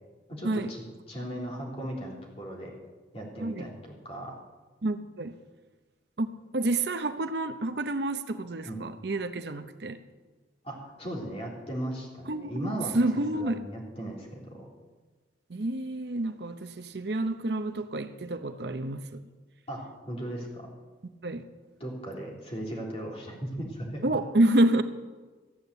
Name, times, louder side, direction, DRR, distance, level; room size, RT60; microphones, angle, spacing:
voice 1, 0.3-2.7 3.1-3.7 4.0-4.4 8.7-8.8 10.6-13.0 13.3-14.7 19.7-20.7 21.8-24.2, right 1 dB, 35° left, 3.4 m, -37 dB
voice 2, 4.8-5.4 6.2-10.0 12.3-13.6 15.5-19.2 21.2-21.4 24.0-24.8, right 1 dB, 60° right, 0.7 m, -28 dB
14.0 x 8.6 x 8.1 m
head